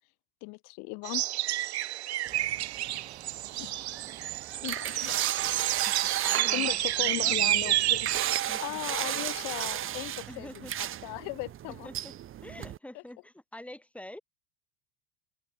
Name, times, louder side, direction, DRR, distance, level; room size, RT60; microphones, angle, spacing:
voice 1, 0.4-1.3 3.6-4.0 4.5-5.3 6.5-8.1 8.6-11.9 12.9-13.0, left 30 dB, 55° left, 3.1 m, -38 dB
sound 1, 1.0-8.4, right 14 dB, 70° right, 1.4 m, -29 dB
sound 2, 2.3-12.8, right 11 dB, 40° right, 6.8 m, -35 dB
voice 2, 5.8-7.4 8.5-9.3 10.3-10.7 11.7-12.1 12.4-14.2, left 1 dB, 5° left, 6.5 m, -47 dB
hypercardioid pair, 85°, 33 cm